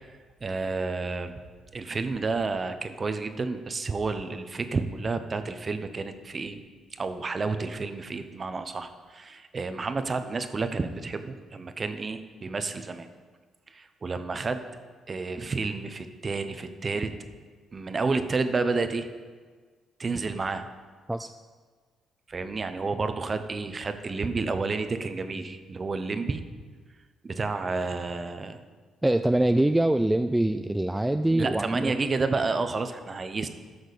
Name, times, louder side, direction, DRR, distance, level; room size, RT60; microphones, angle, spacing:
voice 1, 0.4-1.3 1.7-6.6 7.0-13.1 13.7-14.6 15.1-17.1 17.7-19.1 20.0-20.6 22.3-26.4 27.2-28.6 31.3-33.5, right 4 dB, 35° right, 9 dB, 0.8 m, -30 dB
voice 2, 29.0-31.9, right 1 dB, 10° right, 8 dB, 0.3 m, -24 dB
14.5 x 6.3 x 4.1 m, 1.5 s
cardioid pair, 90°, 0 cm